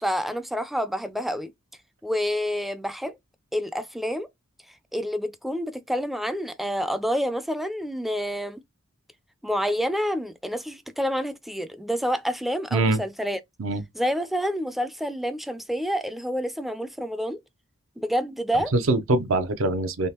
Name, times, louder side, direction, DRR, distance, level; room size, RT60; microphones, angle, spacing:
voice 1, 0.0-1.5 2.0-3.2 3.5-4.3 4.9-8.6 9.4-13.4 13.9-17.4 18.0-18.7, equal, ahead, 0.4 m, -28 dB
voice 2, 12.7-13.0 13.6-13.8 18.7-20.1, right 2 dB, 70° right, 0.6 m, -23 dB
3.5 x 3.3 x 2.8 m
head